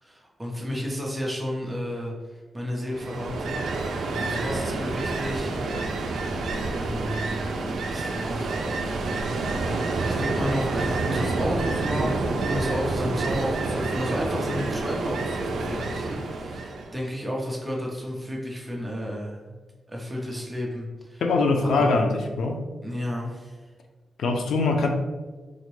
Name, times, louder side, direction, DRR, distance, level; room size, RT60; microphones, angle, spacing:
voice 1, 0.0-5.5 6.8-8.5 10.0-19.6 19.9-21.2 21.6-21.9 22.8-23.7, equal, 10° right, -3 dB, 0.6 m, -32 dB
Ocean, 2.9-17.0, right 3 dB, 80° right, 0.4 m, -28 dB
voice 2, 21.2-22.6 24.2-24.9, left 3 dB, 80° left, 3 dB, 0.4 m, -22 dB
3.8 x 2.1 x 3.0 m, 1.3 s
wide cardioid pair, 165°, 0 cm